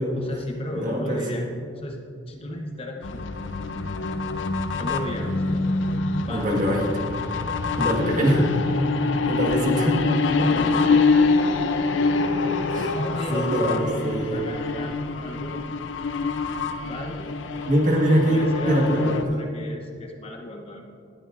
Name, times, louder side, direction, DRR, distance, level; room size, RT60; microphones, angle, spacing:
voice 1, 0.1-1.5 1.8-2.0 2.3-3.3 4.8-5.3 6.3-6.5 8.0-8.5 10.5-11.1 12.6-15.0 15.2-15.6 16.8-17.3 18.0-20.8, left 1 dB, 30° left, 2 dB, 0.9 m, -35 dB
voice 2, 0.7-1.4 6.3-6.9 7.8-8.5 9.0-10.0 10.4-10.5 12.7-12.9 13.3-14.4 17.7-19.2, equal, 40° right, -1 dB, 1.6 m, -23 dB
sound 1, 3.0-19.2, left 4 dB, 70° left, 0.6 m, -25 dB
19.0 x 9.3 x 2.6 m, 2.4 s
head